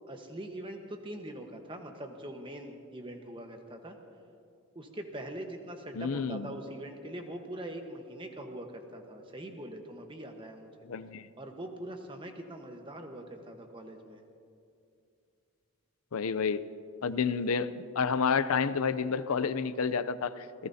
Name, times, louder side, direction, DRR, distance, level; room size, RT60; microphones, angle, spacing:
voice 1, 0.1-4.0 4.7-10.7 11.4-14.2 17.1-17.2, right 1 dB, 25° right, 4 dB, 1.2 m, -42 dB
voice 2, 6.0-6.5 10.8-11.3 16.1-16.6 17.0-20.5, left 5 dB, 85° left, 14 dB, 0.5 m, -30 dB
26.5 x 17.5 x 2.8 m, 2.5 s
head